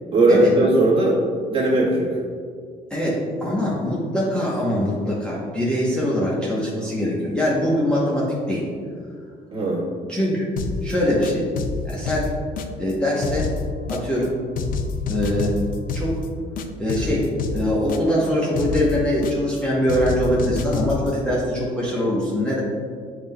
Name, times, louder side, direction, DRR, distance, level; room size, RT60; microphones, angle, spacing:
voice 1, 0.1-1.2 1.5-2.1 9.5-9.9, right 2 dB, 30° right, -6 dB, 1.4 m, -18 dB
voice 2, 2.9-8.7 10.1-10.5 10.8-11.4 11.8-12.3 12.7-13.5 13.9-14.3 15.0-15.6 15.9-16.1 16.8-22.6, equal, 5° left, -7 dB, 0.9 m, -23 dB
sound 1, 10.6-10.9 11.2-12.9 13.2-14.3 14.6-16.3 16.6-18.3 18.6-19.6 19.9-21.1, left 4 dB, 55° left, 0.4 m, -28 dB
7.2 x 3.3 x 2.2 m, 2.1 s
cardioid pair, 110°, 17 cm